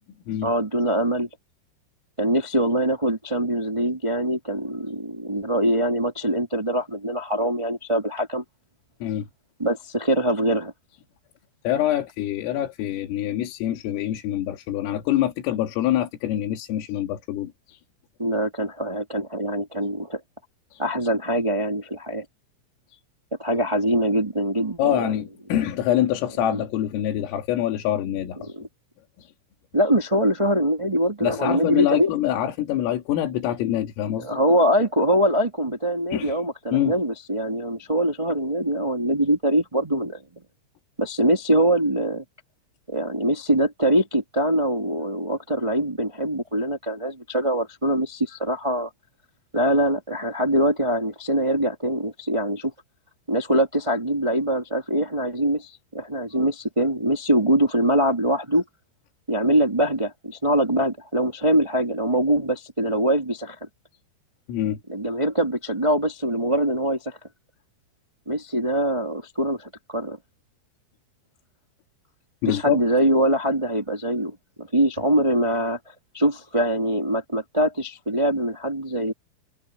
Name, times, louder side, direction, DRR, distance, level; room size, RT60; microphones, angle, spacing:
voice 1, 0.4-1.3 2.2-8.4 9.6-10.7 18.2-20.2 20.8-22.2 23.4-25.1 26.5-26.6 28.5-28.6 29.7-32.1 34.2-40.2 41.0-42.2 42.9-48.9 49.5-52.7 53.3-58.6 59.3-63.5 64.9-67.2 68.2-70.2 72.5-75.8 76.1-79.1, right 1 dB, 15° right, 0.9 m, -23 dB
voice 2, 11.6-17.8 20.7-20.8 22.9-23.0 24.8-28.5 29.2-29.3 31.2-34.4 36.1-36.4 36.7-36.9 64.5-64.8 72.4-72.8, left 12 dB, 85° left, 5.0 m, -25 dB
omnidirectional pair, 5.8 m